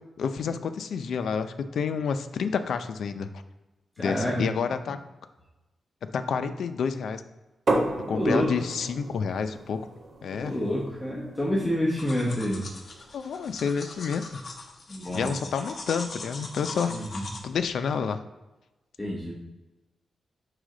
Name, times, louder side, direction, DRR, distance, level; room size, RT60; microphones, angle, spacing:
voice 1, 0.2-3.3 4.0-5.0 6.1-7.2 8.1-9.9 10.2-10.6 13.1-14.4 15.1-16.9 17.4-18.2, left 6 dB, 75° left, 9 dB, 0.4 m, -29 dB
voice 2, 4.0-4.4 8.1-8.6 10.3-12.6 14.9-15.3 16.9-17.2 19.0-19.4, equal, 10° left, -5 dB, 1.1 m, -27 dB
sound 1, 7.7-13.3, right 2 dB, 50° right, 1.2 m, -34 dB
sound 2, 12.0-17.4, left 3 dB, 45° left, 1.0 m, -41 dB
6.2 x 4.9 x 3.8 m, 1.1 s
wide cardioid pair, 140°, 0 cm